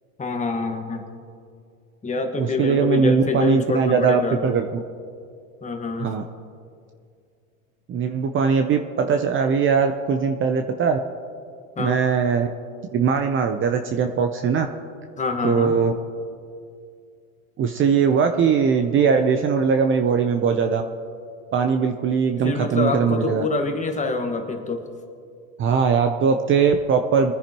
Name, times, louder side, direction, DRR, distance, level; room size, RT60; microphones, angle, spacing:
voice 1, 0.2-1.0 2.0-4.5 5.6-6.1 11.8-12.0 15.2-15.7 22.4-24.9, left 3 dB, 15° left, 4 dB, 1.5 m, -26 dB
voice 2, 2.4-4.6 6.0-6.2 7.9-11.0 11.8-12.5 12.9-14.7 15.4-15.9 17.6-20.8 21.5-23.4 25.6-27.3, right 6 dB, 30° right, 6 dB, 0.7 m, -20 dB
23.0 x 9.9 x 3.0 m, 2.3 s
supercardioid pair, 115°, 41 cm